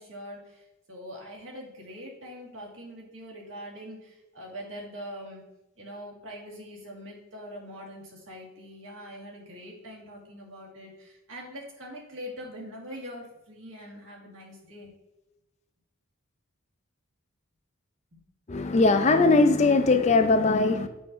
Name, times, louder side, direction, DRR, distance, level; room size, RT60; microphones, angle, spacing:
voice 1, 0.0-5.4 5.8-14.9 18.1-18.2, equal, 65° right, -3 dB, 1.9 m, -43 dB
voice 2, 18.5-20.9, left 3 dB, 30° left, 8 dB, 0.4 m, -20 dB
7.4 x 2.6 x 5.6 m, 1.0 s
head